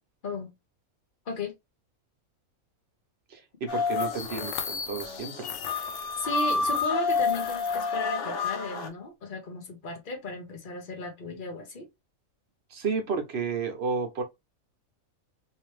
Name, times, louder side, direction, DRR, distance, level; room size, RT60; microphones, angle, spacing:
voice 1, 3.3-5.5 12.7-14.2, right 5 dB, 50° right, 1.1 m, -32 dB
sound 1, 3.7-8.9, left 4 dB, 90° left, 1.3 m, -29 dB
sound 2, 3.9-5.2 5.4-8.0, left 8 dB, 65° left, 0.8 m, -40 dB
voice 2, 6.2-11.9, left 3 dB, 40° left, 1.2 m, -35 dB
3.3 x 3.0 x 3.1 m
omnidirectional pair, 1.5 m